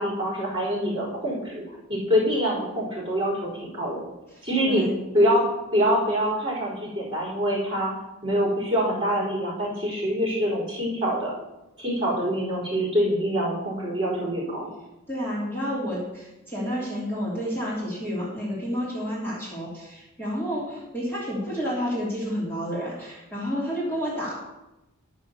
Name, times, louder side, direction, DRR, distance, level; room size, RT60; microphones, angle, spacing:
voice 1, 0.0-4.0 4.4-4.9 5.1-5.4 5.7-7.9 8.2-11.3 11.8-14.7, equal, 25° right, -5 dB, 4.3 m, -25 dB
voice 2, 15.1-24.3, equal, 10° left, -8 dB, 3.0 m, -30 dB
11.0 x 6.3 x 6.7 m, 0.97 s
head